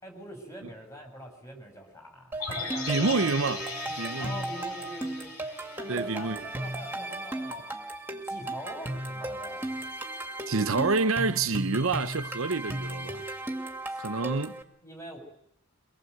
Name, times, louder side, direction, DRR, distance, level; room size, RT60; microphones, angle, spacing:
voice 1, 0.0-3.1 4.2-5.3 5.8-7.8 8.2-9.8 13.9-15.2, equal, 15° left, 6.3 m, -44 dB
sound 1, 2.3-14.6, right 1 dB, 10° right, 2.2 m, -36 dB
sound 2, 2.4-6.6 6.9-7.0, left 4 dB, 75° left, 4.0 m, -38 dB
voice 2, 2.9-3.7 4.0-4.4 5.9-6.5 10.5-13.2 14.0-14.5, right 4 dB, 70° right, 0.9 m, -27 dB
24.0 x 20.0 x 7.9 m
head